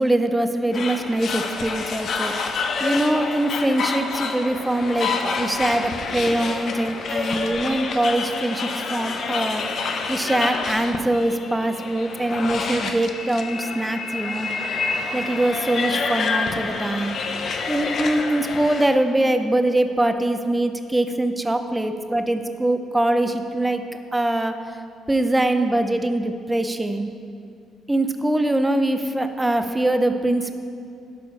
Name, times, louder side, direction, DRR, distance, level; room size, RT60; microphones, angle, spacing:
voice 1, 0.0-2.5 2.8-14.5 15.1-17.1 17.7-23.8 24.1-24.5 25.1-27.1 27.9-30.5, right 1 dB, 10° right, 8 dB, 0.5 m, -23 dB
sound 1, 0.7-18.9, left 4 dB, 50° left, 0.7 m, -28 dB
11.0 x 4.9 x 5.6 m, 2.4 s
cardioid pair, 140°, 0 cm